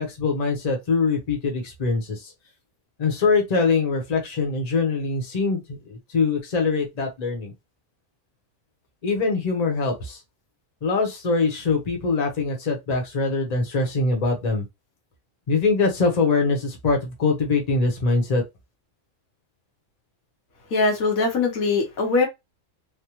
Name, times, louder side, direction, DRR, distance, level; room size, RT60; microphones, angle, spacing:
voice 1, 0.0-2.3 3.0-7.5 9.0-10.2 10.8-14.6 15.5-18.4, left 4 dB, 35° left, 0.9 m, -23 dB
voice 2, 20.7-22.3, left 3 dB, 85° left, 1.5 m, -21 dB
3.5 x 2.2 x 3.0 m
omnidirectional pair, 1.4 m